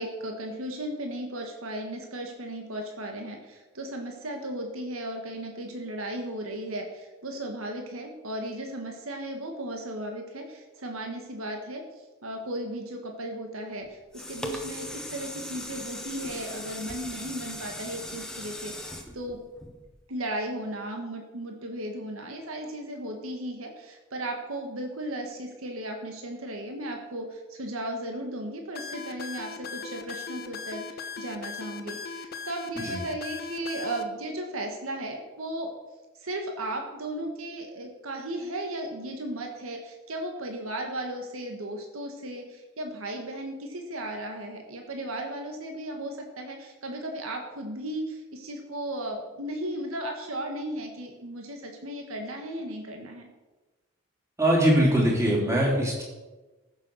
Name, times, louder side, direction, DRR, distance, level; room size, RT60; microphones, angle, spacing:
voice 1, 0.0-11.8 12.2-19.4 20.1-35.7 36.2-53.3, right 1 dB, 80° right, 3 dB, 1.7 m, -35 dB
sound 1, 13.8-20.2 20.7-20.8, left 1 dB, 5° left, 1.2 m, -39 dB
sound 2, 28.7-34.0, left 5 dB, 45° left, 0.9 m, -38 dB
voice 2, 54.4-56.0, right 1 dB, 15° right, -3 dB, 3.3 m, -22 dB
14.5 x 7.0 x 6.3 m, 1.2 s
head